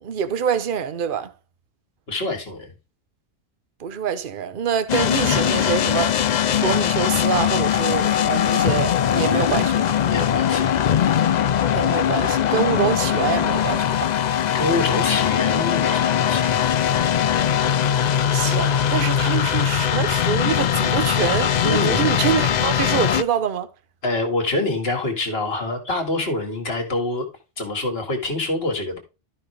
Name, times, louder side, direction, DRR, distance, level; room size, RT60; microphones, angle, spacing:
voice 1, 0.0-1.3 3.8-6.1 6.6-9.9 11.7-14.1 18.3-23.7, right 8 dB, 45° right, 1.0 m, -25 dB
voice 2, 2.1-2.7 5.3-5.4 10.0-10.7 14.5-16.6 21.6-22.1 24.0-27.3 27.6-29.0, left 2 dB, 50° left, 2.3 m, -26 dB
sound 1, 4.9-23.2, left 9 dB, 75° left, 0.4 m, -20 dB
12.5 x 5.7 x 3.4 m
omnidirectional pair, 1.3 m